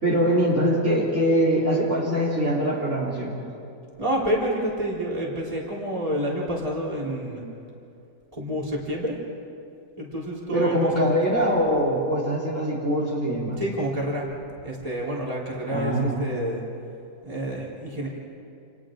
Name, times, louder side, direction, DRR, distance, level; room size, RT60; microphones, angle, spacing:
voice 1, 0.0-3.4 10.5-13.6 15.7-16.2, equal, 35° right, -5 dB, 3.8 m, -23 dB
voice 2, 4.0-7.4 8.3-9.2 10.0-11.2 13.6-14.3 14.6-16.6 17.2-18.1, right 1 dB, 15° right, -5 dB, 4.1 m, -28 dB
30.0 x 29.0 x 3.9 m, 2.6 s
omnidirectional pair, 2.1 m